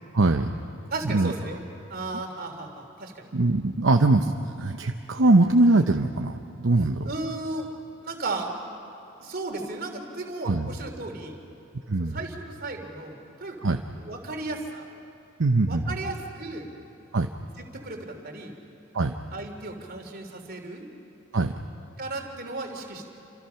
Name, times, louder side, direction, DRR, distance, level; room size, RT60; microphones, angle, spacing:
voice 1, 0.1-0.5 1.0-1.3 3.3-7.1 10.4-10.7 11.9-12.2 13.6-13.8 15.4-16.0 17.1-17.3 18.9-19.1 21.3-21.5, right 2 dB, 65° right, 4 dB, 0.9 m, -22 dB
voice 2, 0.9-1.6 1.9-3.3 7.0-7.7 8.0-8.5 9.2-11.4 12.0-13.6 13.9-14.9 15.7-16.7 17.6-18.5 19.3-20.9 22.0-23.1, right 2 dB, 50° right, 3 dB, 3.4 m, -35 dB
29.0 x 26.5 x 5.8 m, 3.0 s
head